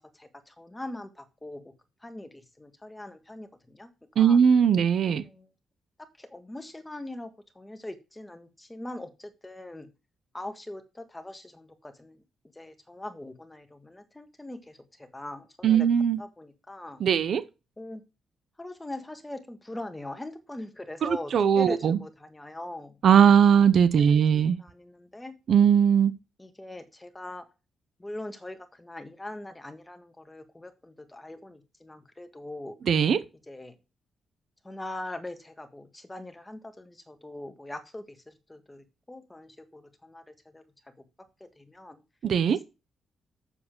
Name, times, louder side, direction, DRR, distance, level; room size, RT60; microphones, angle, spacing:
voice 1, 0.2-1.6 2.0-3.9 4.2-4.4 5.2-5.5 6.2-9.9 10.3-12.2 12.5-15.9 16.2-17.0 17.8-18.0 18.6-23.0 24.0-25.3 26.4-27.4 28.0-32.8 33.5-33.7 34.6-40.6 41.4-42.0 42.5-42.6, left 1 dB, 10° left, 1.6 m, -41 dB
voice 2, 4.2-5.2 15.6-16.2 17.0-17.4 21.0-22.0 23.0-24.6 25.5-26.1 32.8-33.2 42.2-42.6, right 8 dB, 60° right, 0.7 m, -20 dB
7.4 x 7.0 x 5.1 m
cardioid pair, 120°, 0 cm